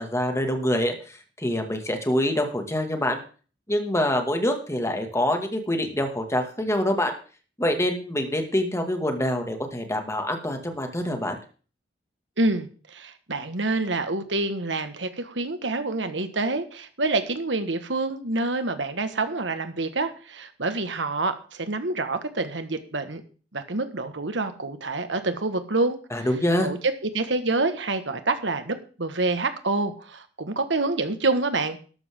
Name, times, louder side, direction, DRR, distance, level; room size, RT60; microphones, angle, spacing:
voice 1, 0.0-3.2 3.7-7.1 7.6-11.3 26.1-26.7, left 1 dB, 15° left, 4 dB, 2.2 m, -25 dB
voice 2, 12.4-23.2 23.5-26.0 26.6-31.8, right 2 dB, 85° right, 9 dB, 1.7 m, -27 dB
13.0 x 12.0 x 3.8 m, 0.39 s
head